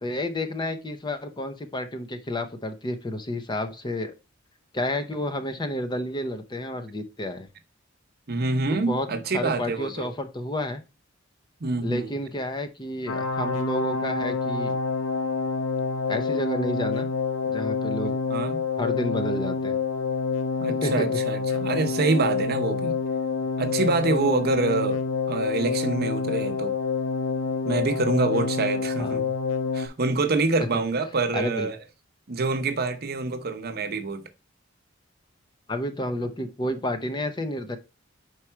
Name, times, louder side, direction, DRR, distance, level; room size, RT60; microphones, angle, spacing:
voice 1, 0.0-4.1 4.7-7.5 8.7-10.8 11.8-14.8 16.1-17.1 17.5-18.2 18.8-19.8 20.8-21.1 29.0-29.2 31.3-31.7 35.7-37.8, left 1 dB, 20° left, 0.6 m, -30 dB
voice 2, 8.3-10.1 11.6-12.1 18.0-18.6 20.6-23.0 23.6-25.0 25.3-26.7 27.6-29.3 29.7-31.8 32.3-34.2, right 3 dB, 50° right, 0.8 m, -26 dB
sound 1, 13.1-29.9, left 5 dB, 90° left, 0.8 m, -27 dB
4.8 x 4.6 x 4.4 m
head